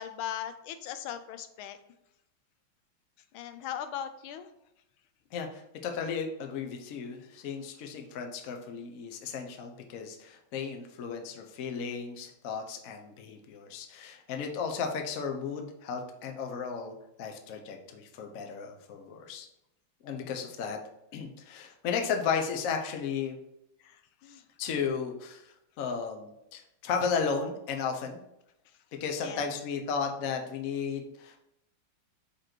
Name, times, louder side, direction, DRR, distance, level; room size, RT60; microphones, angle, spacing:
voice 1, 0.0-1.8 3.3-4.5 23.8-24.0 24.2-24.4 29.2-29.4, left 9 dB, 85° left, 10 dB, 1.4 m, -38 dB
voice 2, 5.3-19.5 20.0-20.8 21.1-23.4 24.6-25.5 25.8-28.2 29.0-31.4, left 6 dB, 60° left, 3 dB, 0.9 m, -34 dB
5.2 x 4.4 x 4.4 m, 0.83 s
omnidirectional pair, 2.2 m